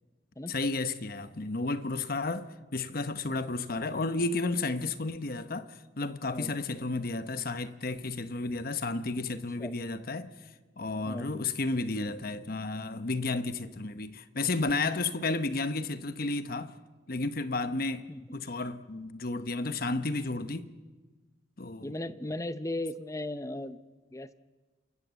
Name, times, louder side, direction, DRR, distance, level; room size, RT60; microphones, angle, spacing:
voice 1, 0.5-5.7 6.0-10.3 10.8-16.7 17.1-18.1 18.3-20.7 21.6-21.9, left 3 dB, 50° left, 1.0 m, -32 dB
voice 2, 11.0-11.4 18.1-18.4 21.8-23.8 24.1-24.3, left 1 dB, 15° left, 0.7 m, -37 dB
28.0 x 16.0 x 7.6 m
head